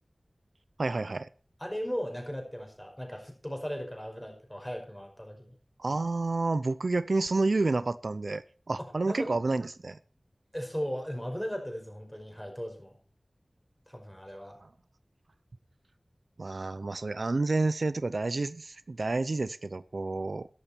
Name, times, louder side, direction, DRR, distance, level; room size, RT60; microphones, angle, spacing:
voice 1, 0.8-1.3 5.8-10.0 16.4-20.5, right 3 dB, 70° right, 15 dB, 0.5 m, -29 dB
voice 2, 1.6-5.5 8.8-9.3 10.5-13.0 13.9-14.6, equal, 10° left, 3 dB, 5.5 m, -37 dB
13.5 x 11.0 x 4.5 m, 0.40 s
wide cardioid pair, 50°, 0 cm